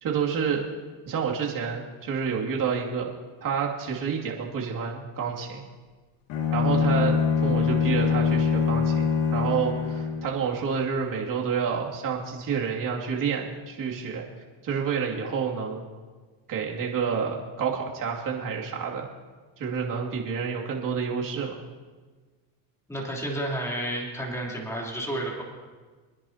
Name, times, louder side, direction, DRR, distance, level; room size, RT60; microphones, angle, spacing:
voice 1, 0.0-0.7 1.1-3.1 3.4-5.6 6.5-14.2 14.6-15.8 16.5-19.1 19.6-21.6, right 6 dB, 45° right, -1 dB, 2.6 m, -29 dB
Bowed string instrument, 6.3-10.4, left 6 dB, 65° left, 2.1 m, -24 dB
voice 2, 22.9-25.4, right 1 dB, 5° left, -2 dB, 3.3 m, -31 dB
25.5 x 10.5 x 2.9 m, 1.4 s
supercardioid pair, 105°, 43 cm